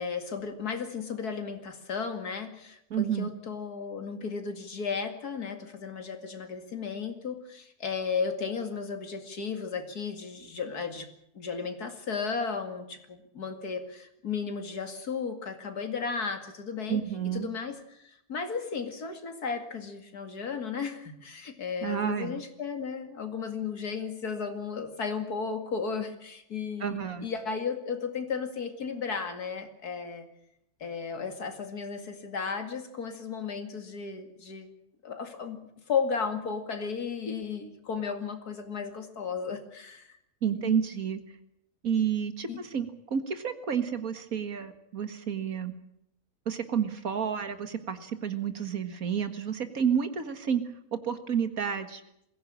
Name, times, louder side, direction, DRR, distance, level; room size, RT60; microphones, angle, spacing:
voice 1, 0.0-11.1 11.3-17.0 17.3-30.3 30.8-34.7 35.0-35.6 35.9-40.2 40.5-40.8 42.5-42.6, left 5 dB, 90° left, 7 dB, 2.8 m, -34 dB
voice 2, 2.9-3.3 16.9-17.5 21.8-22.3 26.8-27.3 40.4-41.2 41.8-45.7 46.5-50.6 51.0-52.0, right 8 dB, 65° right, 9 dB, 2.1 m, -30 dB
22.0 x 16.0 x 8.8 m, 0.78 s
omnidirectional pair, 1.6 m